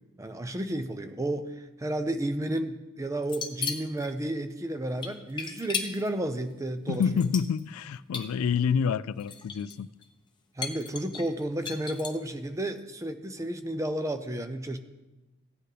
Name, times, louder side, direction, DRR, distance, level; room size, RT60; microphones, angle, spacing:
voice 1, 0.2-7.0 10.6-14.8, right 1 dB, 15° right, 0.5 m, -32 dB
sound 1, 3.2-4.1 5.0-6.1 6.9-7.8 8.1-8.3 9.2-9.8 10.0-10.1 10.6-12.3, left 5 dB, 20° left, 0.8 m, -35 dB
voice 2, 6.9-9.9, left 6 dB, 70° left, 0.3 m, -27 dB
16.0 x 8.9 x 3.4 m
head